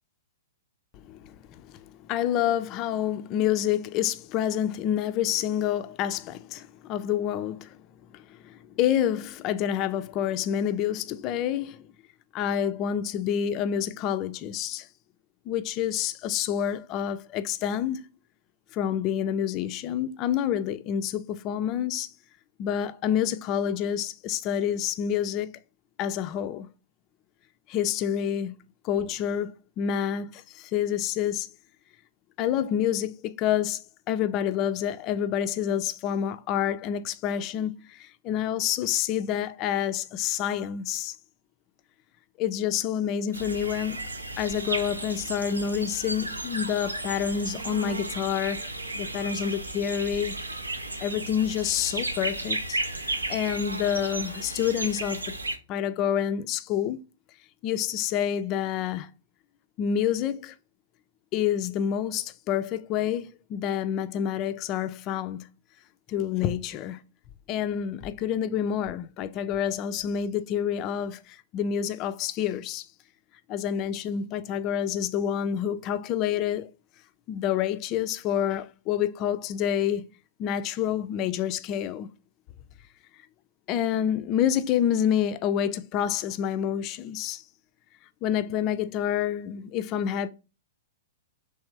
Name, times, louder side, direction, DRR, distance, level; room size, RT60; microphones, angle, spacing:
voice 1, 1.1-7.8 8.1-11.9 12.3-14.9 15.5-18.0 18.7-22.1 22.6-25.5 26.0-26.7 27.7-28.6 28.8-31.5 32.4-33.8 34.1-41.1 42.4-44.1 44.4-48.7 48.9-50.3 51.0-52.8 53.3-55.4 55.7-57.0 57.6-59.1 59.8-60.5 61.3-65.5 66.1-67.0 67.5-72.9 73.5-76.7 77.3-80.1 80.4-82.1 83.7-87.4 88.2-90.3, left 9 dB, 30° left, 0.3 m, -28 dB
sound 1, 43.3-55.6, right 2 dB, 80° right, 0.4 m, -34 dB
3.3 x 3.1 x 3.2 m
figure-of-eight pair, 105°, 0 cm